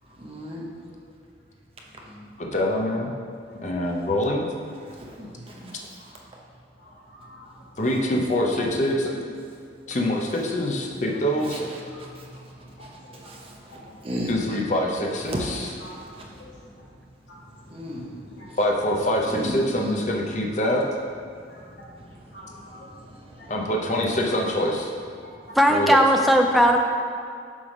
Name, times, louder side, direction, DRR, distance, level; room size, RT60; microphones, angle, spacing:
voice 1, 0.2-1.0 1.9-2.3 4.8-6.1 7.5-8.0 11.3-14.6 15.3-18.6 19.3-20.0 21.5-23.7, equal, 30° right, -1 dB, 0.7 m, -37 dB
voice 2, 2.4-3.1 3.6-4.5 7.8-9.2 9.9-11.6 14.3-15.3 18.6-20.9 23.5-24.9 25.7-26.0, left 1 dB, 40° left, 0 dB, 0.7 m, -24 dB
voice 3, 5.7-6.1 6.8-7.8 9.9-10.0 11.0-11.2 11.9-13.3 13.7-14.1 15.8-16.9 17.3-18.5 20.5-20.6 21.3-23.0 23.4-23.5 25.2-25.9, equal, 65° left, -6 dB, 1.4 m, -49 dB
voice 4, 25.6-26.8, equal, ahead, 2 dB, 0.3 m, -17 dB
7.1 x 3.4 x 5.2 m, 2.2 s
head